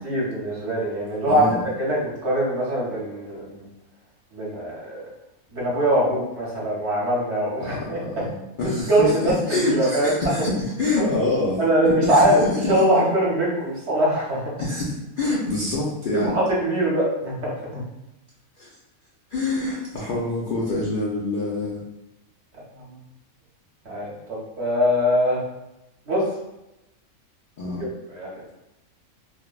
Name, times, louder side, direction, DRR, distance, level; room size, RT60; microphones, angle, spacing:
voice 1, 0.0-1.5 1.8-3.7 4.3-5.0 5.5-8.2 8.6-10.2 11.0-11.1 11.6-14.5 16.1-17.8 22.8-22.9 23.8-25.4 26.1-26.2 27.8-28.3, right 1 dB, 55° right, -5 dB, 1.0 m, -22 dB
voice 2, 1.3-1.6 7.6-7.9 8.2-8.3 8.6-12.8 14.6-16.3 18.6-18.7 19.3-21.8 27.6-27.9, left 2 dB, 60° left, -7 dB, 0.5 m, -26 dB
3.2 x 2.1 x 2.3 m, 0.91 s
omnidirectional pair, 1.4 m